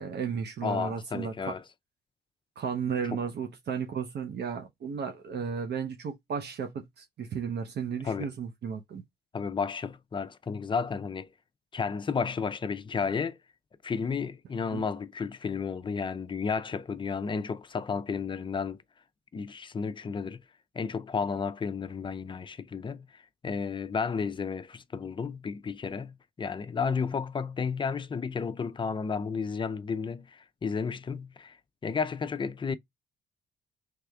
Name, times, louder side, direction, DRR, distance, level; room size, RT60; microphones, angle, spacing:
voice 1, 0.0-1.5 2.6-9.0 14.7-14.9, right 6 dB, 60° right, 0.8 m, -34 dB
voice 2, 0.6-1.6 3.1-3.2 8.0-8.3 9.3-11.3 11.7-13.4 13.8-18.8 19.3-20.4 20.7-23.1 23.4-31.6 31.8-32.8, left 5 dB, 25° left, 0.5 m, -32 dB
4.8 x 3.4 x 2.3 m
cardioid pair, 90°, 20 cm